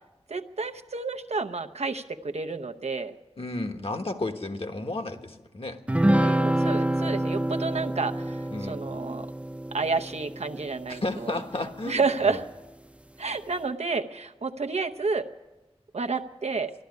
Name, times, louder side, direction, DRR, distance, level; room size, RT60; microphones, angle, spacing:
voice 1, 0.3-3.2 6.2-9.3 9.7-11.4 11.8-12.4 13.2-15.3 15.9-16.7, right 4 dB, 85° right, 7 dB, 0.7 m, -30 dB
voice 2, 3.4-5.8 8.5-8.8 10.9-12.4, left 2 dB, 60° left, 5 dB, 1.3 m, -33 dB
sound 1, 5.9-11.5, right 1 dB, 10° right, 0.5 m, -27 dB
13.0 x 11.5 x 9.3 m, 1.1 s
wide cardioid pair, 55°, 11 cm